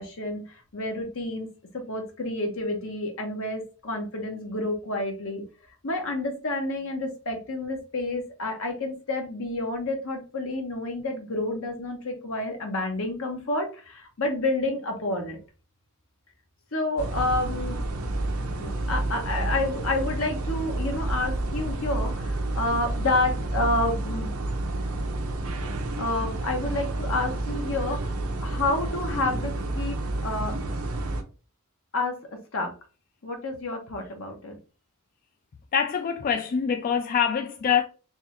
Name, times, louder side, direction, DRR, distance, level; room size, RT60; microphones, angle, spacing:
voice 1, 0.0-1.5 1.7-5.4 5.8-15.4 16.7-17.8 18.6-24.3 25.6-30.0 30.2-30.5 31.9-32.2 32.5-32.7 33.2-34.6, left 2 dB, 65° left, 1.1 m, -29 dB
sound 1, 17.0-31.2, right 2 dB, 75° right, 0.7 m, -30 dB
voice 2, 35.7-37.8, left 7 dB, 40° left, 0.3 m, -24 dB
3.6 x 3.3 x 3.1 m
head